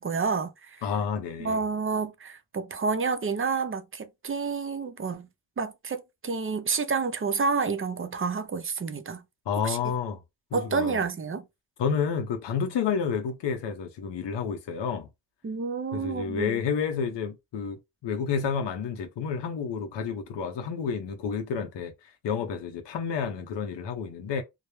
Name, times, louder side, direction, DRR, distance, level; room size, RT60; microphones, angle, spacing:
voice 1, 0.0-0.8 1.4-5.3 5.6-9.2 9.6-9.8 10.5-11.5 15.4-16.6, right 5 dB, 30° right, 0.5 m, -29 dB
voice 2, 0.8-1.6 9.5-10.2 10.5-11.0 11.8-15.1 15.9-21.9 22.2-24.4, left 6 dB, 85° left, 0.6 m, -30 dB
2.1 x 2.0 x 3.0 m
cardioid pair, 45°, 42 cm